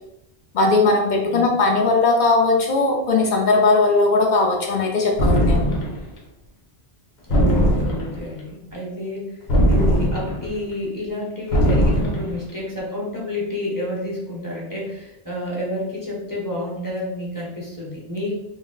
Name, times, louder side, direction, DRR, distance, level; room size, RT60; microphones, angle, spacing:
voice 1, 0.5-5.6, left 3 dB, 55° left, 1 dB, 0.6 m, -18 dB
sound 1, 5.2-6.1 7.3-8.3 9.5-10.5 11.5-12.4, equal, 90° left, 1.0 m, -19 dB
voice 2, 7.3-9.4 9.7-18.4, left 1 dB, 20° left, -4 dB, 0.8 m, -29 dB
2.9 x 2.1 x 3.6 m, 0.89 s
omnidirectional pair, 1.1 m